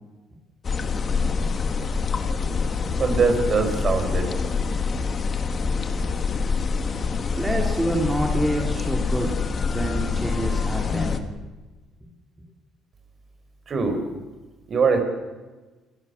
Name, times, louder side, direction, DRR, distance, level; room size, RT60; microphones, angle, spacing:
sound 1, 0.6-11.2, left 5 dB, 35° left, 2.0 m, -25 dB
voice 1, 3.0-4.4 13.7-14.0 14.7-15.0, right 4 dB, 40° right, 6 dB, 5.0 m, -22 dB
voice 2, 7.4-9.3 9.6-11.2, right 1 dB, 10° right, 0 dB, 3.3 m, -27 dB
28.5 x 16.0 x 7.2 m, 1.2 s
cardioid pair, 120°, 0 cm